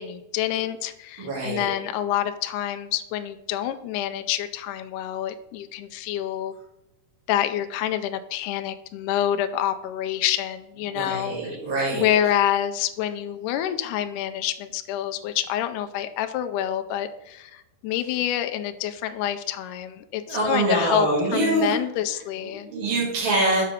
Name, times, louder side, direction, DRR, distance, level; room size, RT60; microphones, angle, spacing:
voice 1, 0.0-6.5 7.3-11.4 11.9-21.1 21.3-22.7, left 11 dB, 80° left, 8 dB, 1.8 m, -27 dB
voice 2, 1.2-1.7 10.9-12.2 20.2-21.7 22.4-23.6, right 2 dB, 40° right, -6 dB, 2.2 m, -25 dB
6.8 x 4.4 x 4.9 m, 0.93 s
omnidirectional pair, 4.0 m